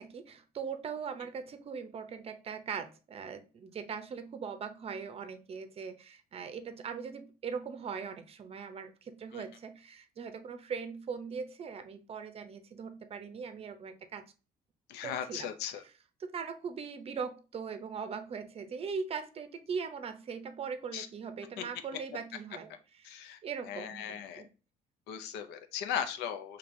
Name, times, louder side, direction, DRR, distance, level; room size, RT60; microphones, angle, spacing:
voice 1, 0.0-14.2 15.0-15.5 16.2-24.5, right 6 dB, 35° right, 0.6 m, -40 dB
voice 2, 14.9-15.8 20.9-21.1 21.6-21.7 23.0-23.4 23.7-24.4 25.1-26.6, left 9 dB, 80° left, 0.5 m, -37 dB
5.1 x 2.8 x 2.6 m
cardioid pair, 110°, 17 cm